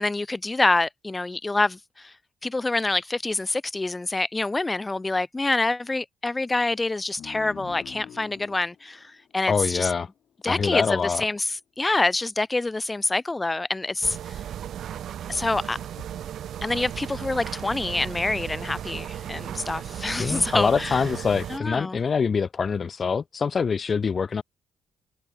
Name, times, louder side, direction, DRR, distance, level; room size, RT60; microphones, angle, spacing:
voice 1, 0.0-2.1 2.4-9.9 10.4-14.2 15.3-15.8 16.6-21.0 21.5-22.0, left 2 dB, 20° left, 3.3 m, -26 dB
sound 1, 7.2-10.3, left 9 dB, 65° left, 6.8 m, -46 dB
voice 2, 9.5-10.1 10.5-11.3 20.2-24.4, left 5 dB, 40° left, 0.6 m, -25 dB
sound 2, 14.0-21.6, right 10 dB, 70° right, 3.5 m, -35 dB
cardioid pair, 90°, 0 cm